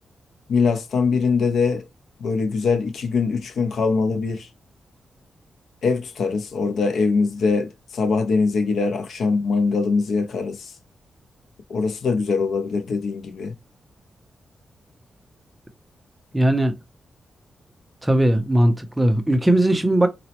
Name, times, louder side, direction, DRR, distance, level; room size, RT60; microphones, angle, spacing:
voice 1, 0.5-1.9 2.2-4.5 5.8-10.7 11.7-13.5, left 4 dB, 70° left, 0.5 m, -22 dB
voice 2, 16.3-16.8 18.0-20.1, right 1 dB, 10° right, 0.4 m, -18 dB
4.0 x 2.0 x 2.8 m
wide cardioid pair, 170°, 0 cm